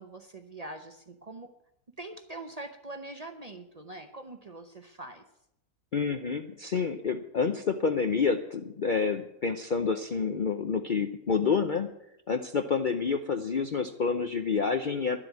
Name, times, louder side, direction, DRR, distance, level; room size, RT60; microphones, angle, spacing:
voice 1, 0.0-1.5 2.0-5.2, right 2 dB, 35° right, 7 dB, 0.7 m, -43 dB
voice 2, 5.9-11.9 12.3-15.2, left 5 dB, 50° left, 7 dB, 0.6 m, -28 dB
11.5 x 7.6 x 9.3 m, 0.81 s
omnidirectional pair, 1.5 m